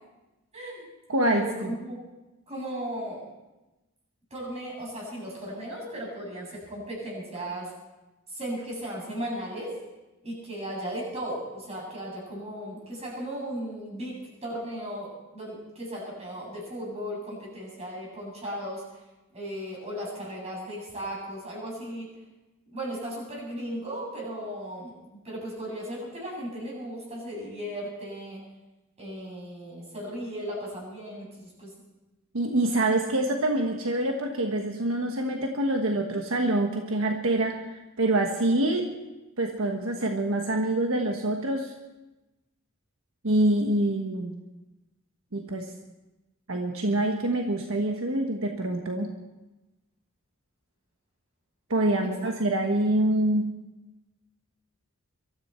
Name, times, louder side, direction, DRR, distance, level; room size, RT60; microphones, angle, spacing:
voice 1, 0.5-0.9 1.2-2.0 2.5-3.2 4.3-7.7 8.3-9.7 10.2-18.8 19.3-22.1 22.7-25.0 25.2-28.4 29.0-31.7 52.0-52.1, equal, 30° right, -3 dB, 7.7 m, -36 dB
voice 2, 1.1-1.7 32.3-38.9 39.4-41.7 43.2-44.3 45.3-45.7 46.5-49.1 51.7-53.5, right 1 dB, 80° right, 3 dB, 1.3 m, -26 dB
23.0 x 13.5 x 4.4 m, 1.0 s
head